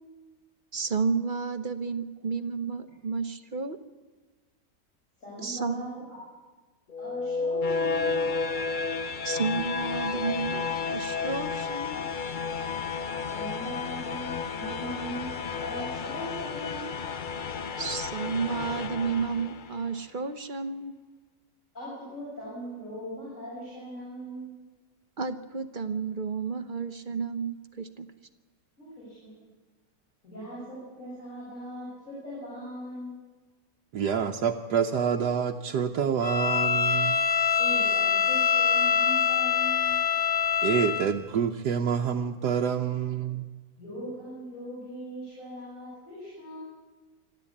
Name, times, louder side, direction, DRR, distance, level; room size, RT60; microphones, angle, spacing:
voice 1, 0.7-3.8 5.4-5.9 9.2-12.0 17.8-20.9 25.2-28.1, right 5 dB, 45° right, 10 dB, 0.6 m, -31 dB
voice 2, 5.2-6.2 7.0-8.2 13.3-15.3 15.6-16.9 21.7-24.5 28.8-29.4 30.2-33.1 37.6-39.9 43.8-46.6, right 1 dB, 45° left, -8 dB, 8.4 m, -40 dB
sound 1, 6.9-19.9, left 5 dB, 70° left, 0.4 m, -32 dB
voice 3, 33.9-37.2 40.6-43.5, right 7 dB, 70° right, 3 dB, 1.4 m, -27 dB
Bowed string instrument, 36.2-41.1, left 7 dB, 25° left, 1.2 m, -24 dB
26.0 x 12.5 x 8.6 m, 1.3 s
omnidirectional pair, 1.9 m